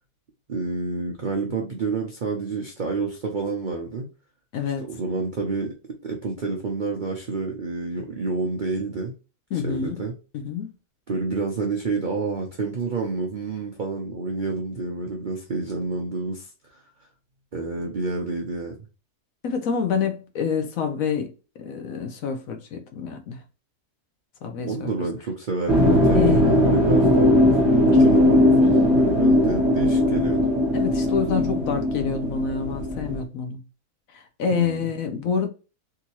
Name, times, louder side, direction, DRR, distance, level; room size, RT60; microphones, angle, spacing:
voice 1, 0.5-4.1 4.8-5.7 6.0-9.1 9.6-10.1 11.1-16.8 17.5-18.7 24.7-30.5 34.5-34.9, right 3 dB, 60° right, 0.5 m, -29 dB
voice 2, 4.5-4.9 9.5-10.0 10.4-10.7 19.4-21.3 21.6-23.4 24.4-24.9 26.1-26.5 30.7-33.6 34.1-35.5, left 6 dB, 65° left, 1.0 m, -27 dB
sound 1, 25.7-33.2, left 1 dB, ahead, 1.0 m, -19 dB
3.7 x 2.7 x 2.9 m
omnidirectional pair, 1.7 m